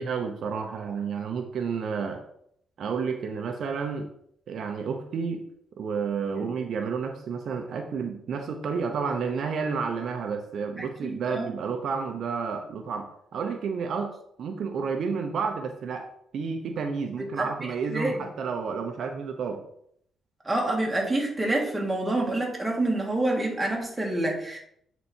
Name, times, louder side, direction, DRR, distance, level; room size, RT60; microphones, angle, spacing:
voice 1, 0.0-2.2 2.8-4.1 4.5-5.4 5.8-13.1 13.3-14.1 14.4-16.1 16.3-19.6, right 5 dB, 65° right, 4 dB, 0.8 m, -30 dB
voice 2, 10.8-11.5 17.2-17.5 17.9-18.2 20.5-24.6, right 1 dB, 10° right, -1 dB, 1.9 m, -27 dB
8.4 x 4.1 x 4.4 m, 0.70 s
cardioid pair, 125°, 0 cm